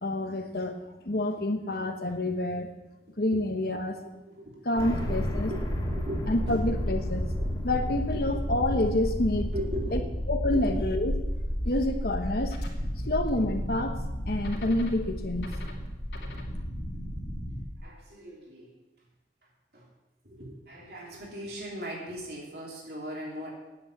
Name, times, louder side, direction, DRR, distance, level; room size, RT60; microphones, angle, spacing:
voice 1, 0.0-0.8 1.0-2.7 3.2-4.0 4.7-5.5 6.3-7.2 7.6-9.5 9.9-10.0 10.3-11.1 11.6-12.6 13.0-14.0 14.3-15.5, left 1 dB, 55° left, 5 dB, 1.1 m, -28 dB
voice 2, 4.0-6.8 7.4-7.5 8.1-8.4 9.5-10.1 10.5-10.8 17.8-18.8 19.7-19.9 20.2-23.5, equal, 60° right, -3 dB, 3.2 m, -39 dB
sound 1, 4.8-17.8, equal, 20° left, 2.2 m, -32 dB
sound 2, 12.5-17.6, equal, 75° left, 2.7 m, -39 dB
9.5 x 8.4 x 8.4 m, 1.0 s
head